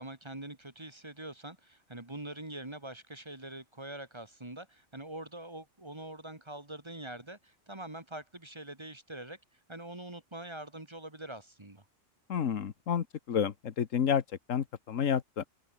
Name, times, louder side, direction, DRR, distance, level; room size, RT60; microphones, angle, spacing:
voice 1, 0.0-9.4 9.7-11.8, right 1 dB, 20° right, 1.9 m, -44 dB
voice 2, 12.3-14.2 14.5-15.4, left 8 dB, 85° left, 1.5 m, -30 dB
omnidirectional pair, 1.3 m